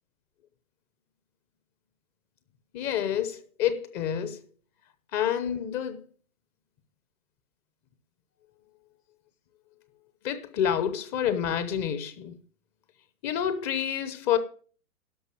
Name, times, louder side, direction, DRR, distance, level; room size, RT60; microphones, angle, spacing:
voice 1, 2.7-4.4 5.1-6.0 10.2-12.3 13.2-14.4, left 9 dB, 25° left, 0.8 m, -28 dB
12.0 x 5.5 x 7.6 m
hypercardioid pair, 125°, 43 cm